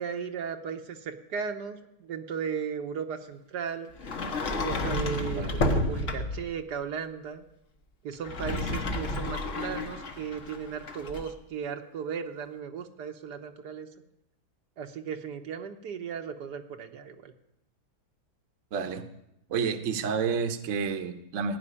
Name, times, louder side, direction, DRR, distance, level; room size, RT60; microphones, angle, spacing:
voice 1, 0.0-3.9 4.6-7.4 8.0-13.9 14.8-17.3, right 6 dB, 75° right, 5 dB, 1.5 m, -36 dB
Sliding door, 4.0-6.5 8.1-11.3, left 2 dB, 50° left, 1.4 m, -31 dB
voice 2, 5.3-5.7 18.7-19.1 19.5-21.6, right 5 dB, 55° right, 7 dB, 1.2 m, -30 dB
15.5 x 6.0 x 9.8 m, 0.82 s
omnidirectional pair, 1.8 m